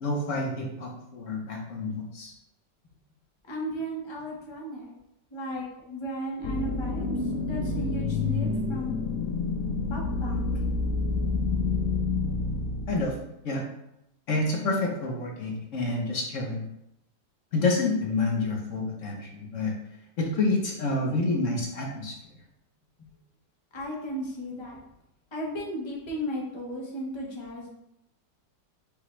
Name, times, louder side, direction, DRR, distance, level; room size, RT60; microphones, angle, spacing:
voice 1, 0.0-2.3 12.9-13.1 13.4-13.6 14.3-16.6 17.5-19.7 20.2-22.1, left 2 dB, 55° left, -1 dB, 1.0 m, -28 dB
voice 2, 3.4-4.9 5.3-8.9 9.9-10.6 23.0-23.1 23.7-24.8 25.3-27.7, equal, 35° left, -2 dB, 0.4 m, -35 dB
sound 1, 6.4-13.1, left 3 dB, 75° left, 0.7 m, -28 dB
6.8 x 2.3 x 3.1 m, 0.82 s
omnidirectional pair, 1.9 m